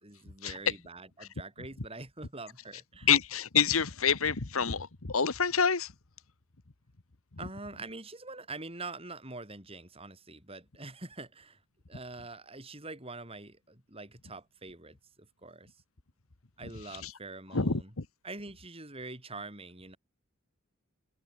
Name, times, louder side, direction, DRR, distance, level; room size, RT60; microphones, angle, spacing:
voice 1, 0.0-3.1 7.4-11.6 11.9-15.8 16.6-17.9 18.2-20.0, right 3 dB, 25° right, 5.0 m, -45 dB
voice 2, 3.1-5.9 17.5-17.8, left 7 dB, 75° left, 1.4 m, -27 dB
head